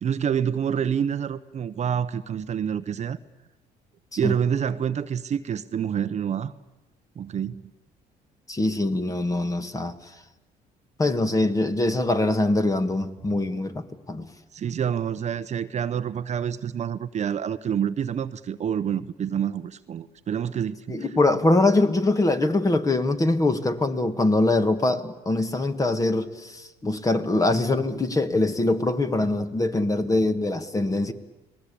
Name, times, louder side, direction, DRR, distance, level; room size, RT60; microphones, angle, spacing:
voice 1, 0.0-3.2 4.2-6.5 7.2-7.6 14.5-21.1, right 8 dB, 40° right, 0.8 m, -27 dB
voice 2, 8.5-10.0 11.0-14.3 20.9-31.1, left 2 dB, 20° left, 1.7 m, -23 dB
30.0 x 20.0 x 8.5 m
cardioid pair, 110°, 17 cm